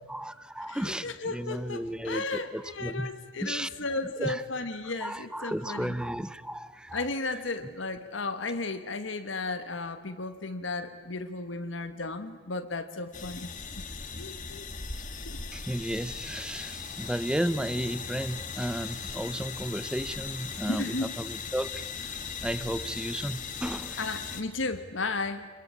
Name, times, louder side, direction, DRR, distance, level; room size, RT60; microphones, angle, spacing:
voice 1, 0.1-3.1 3.4-3.7 4.2-4.4 5.0-7.0 15.5-24.1, right 1 dB, 5° right, 16 dB, 0.7 m, -34 dB
voice 2, 0.6-6.0 6.9-13.5 14.2-14.7 15.2-15.4 20.7-21.1 24.0-25.5, left 3 dB, 75° left, 9 dB, 1.4 m, -34 dB
sound 1, 13.1-24.4, left 5 dB, 45° left, 1.9 m, -38 dB
26.0 x 22.0 x 8.5 m, 1.5 s
head